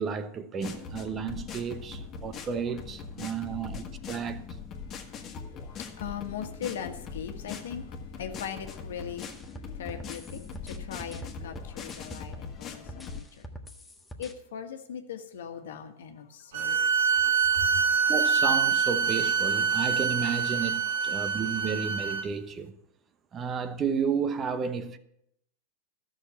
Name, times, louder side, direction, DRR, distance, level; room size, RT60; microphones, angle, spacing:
voice 1, 0.0-4.5 16.6-16.9 18.1-22.8 23.3-25.0, right 6 dB, 30° right, 1.0 m, -32 dB
sound 1, 0.6-13.2, left 5 dB, 30° left, 1.7 m, -41 dB
voice 2, 4.8-13.5 14.2-16.8 17.6-17.8, left 8 dB, 75° left, 1.5 m, -40 dB
sound 2, 9.2-12.6 12.9-14.3, equal, 5° left, 1.6 m, -44 dB
sound 3, 16.5-22.2, right 6 dB, 70° right, 1.3 m, -25 dB
13.0 x 6.4 x 8.2 m
hypercardioid pair, 110°, 0 cm